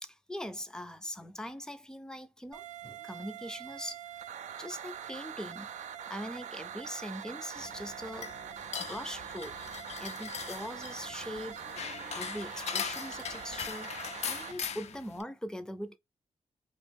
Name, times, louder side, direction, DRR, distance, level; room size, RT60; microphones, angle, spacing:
voice 1, 0.0-4.0 4.6-5.7 6.1-8.3 8.8-9.6 10.0-11.6 12.1-13.9 14.2-16.0, equal, 5° left, 0.5 m, -41 dB
sound 1, 2.5-14.5, right 9 dB, 90° right, 0.4 m, -43 dB
sound 2, 7.6-15.2, left 7 dB, 65° left, 0.4 m, -40 dB
3.0 x 2.4 x 3.4 m
wide cardioid pair, 125°, 12 cm